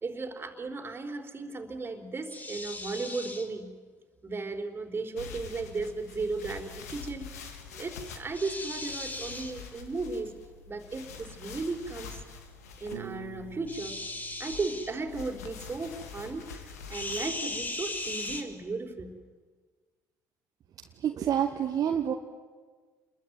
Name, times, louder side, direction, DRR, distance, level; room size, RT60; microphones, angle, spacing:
voice 1, 0.0-3.7 4.2-10.3 10.7-12.2 12.8-14.0 14.4-19.1, right 3 dB, 25° right, 4 dB, 3.9 m, -35 dB
sound 1, 2.3-3.5 8.3-9.6 13.7-14.9 16.9-18.4, left 2 dB, 20° left, 3.4 m, -37 dB
sound 2, 5.2-18.4, left 5 dB, 80° left, 2.4 m, -46 dB
Piano, 12.9-15.8, right 7 dB, 75° right, 1.6 m, -47 dB
voice 2, 21.0-22.1, right 9 dB, 45° right, 4 dB, 1.7 m, -27 dB
28.5 x 22.0 x 9.4 m, 1.5 s
figure-of-eight pair, 55°, 8 cm